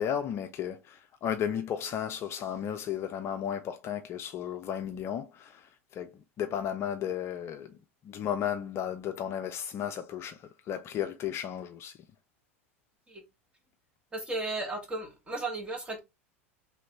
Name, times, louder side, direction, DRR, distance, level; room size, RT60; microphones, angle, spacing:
voice 1, 0.0-7.7 8.0-10.4 10.7-12.0, left 9 dB, 35° left, 0.4 m, -34 dB
voice 2, 14.1-16.0, right 2 dB, 15° right, 1.3 m, -35 dB
3.3 x 3.0 x 2.9 m
figure-of-eight pair, 85°, 7 cm